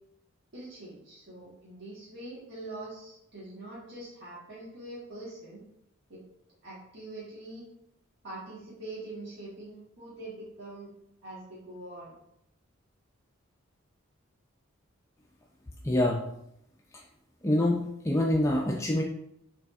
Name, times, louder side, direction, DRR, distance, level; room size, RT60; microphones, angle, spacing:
voice 1, 0.5-5.6 6.1-6.2 6.6-7.6 8.2-10.9 11.2-12.1, right 2 dB, 60° right, -8 dB, 1.4 m, -43 dB
voice 2, 15.8-16.2 17.4-19.0, left 1 dB, 15° left, -1 dB, 0.4 m, -25 dB
6.4 x 3.5 x 2.4 m, 0.79 s
head